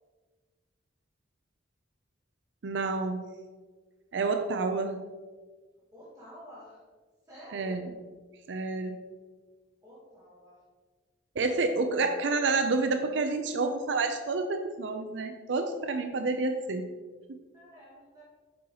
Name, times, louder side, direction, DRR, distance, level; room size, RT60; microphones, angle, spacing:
voice 1, 2.6-3.2 4.1-5.0 7.5-7.9 8.5-9.0 11.4-16.9 17.3-17.4, right 3 dB, 75° right, 7 dB, 0.5 m, -29 dB
voice 2, 5.9-6.8 7.3-7.8 9.8-10.6 17.5-18.2, equal, 20° right, -8 dB, 1.4 m, -50 dB
7.5 x 5.5 x 3.0 m, 1.4 s
head